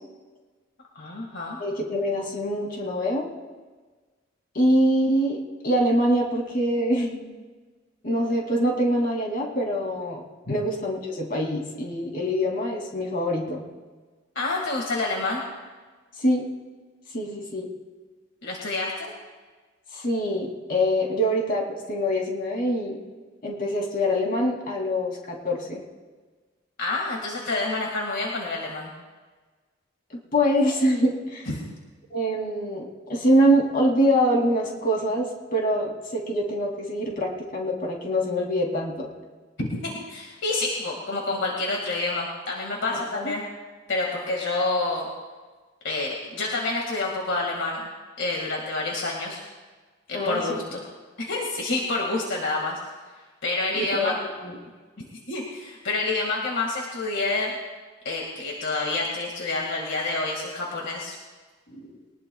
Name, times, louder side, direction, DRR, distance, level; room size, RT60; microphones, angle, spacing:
voice 1, 1.0-1.6 10.5-10.6 14.4-15.4 18.4-19.1 26.8-28.9 31.5-31.6 39.6-43.4 43.9-45.1 45.8-47.8 48.2-49.4 50.1-50.8 51.2-52.8 53.4-54.2 55.3-57.5 58.0-61.2, left 2 dB, 65° left, -1 dB, 2.1 m, -28 dB
voice 2, 1.6-3.3 4.5-7.2 8.0-10.2 10.5-13.6 16.2-16.4 17.1-17.7 19.9-23.0 23.4-25.8 30.3-31.5 32.1-39.1 42.9-43.3 50.1-50.6 53.7-54.1 54.4-54.6 61.7-61.9, equal, 45° left, -1 dB, 2.9 m, -24 dB
22.5 x 19.5 x 2.4 m, 1.4 s
head